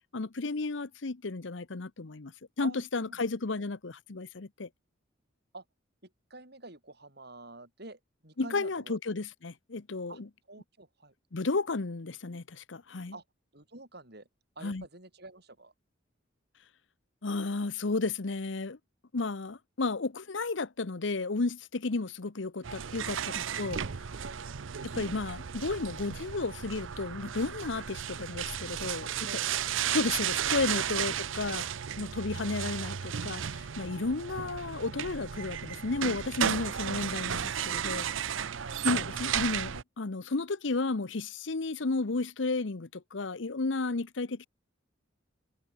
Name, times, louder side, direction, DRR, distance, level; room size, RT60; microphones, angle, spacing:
voice 1, 0.1-2.3 2.6-4.7 8.4-10.3 11.3-13.2 14.6-14.8 17.2-18.8 19.1-23.8 24.8-29.4 29.9-31.7 32.0-38.1 38.8-44.5, left 3 dB, 70° left, 0.9 m, -33 dB
voice 2, 2.6-3.3 3.6-3.7 5.5-5.6 6.3-9.0 10.1-10.2 10.5-11.1 13.1-13.2 13.5-14.3 14.5-15.7 23.2-23.4 24.2-24.6 29.0-30.0 31.1-31.2 38.3-39.0, right 2 dB, 55° right, 6.8 m, -49 dB
sound 1, 22.6-39.8, right 8 dB, 80° right, 0.7 m, -34 dB
head